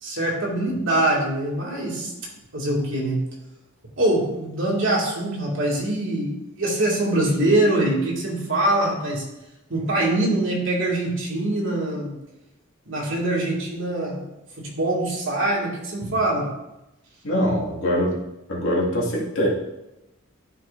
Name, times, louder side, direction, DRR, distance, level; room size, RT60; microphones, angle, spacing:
voice 1, 0.0-2.1 2.5-3.2 4.0-9.2 9.7-12.1 12.9-14.2 14.6-16.5, right 1 dB, 65° right, -4 dB, 2.4 m, -23 dB
voice 2, 17.2-18.2 18.5-19.5, equal, 75° left, -4 dB, 2.3 m, -23 dB
12.5 x 5.4 x 2.7 m, 0.94 s
head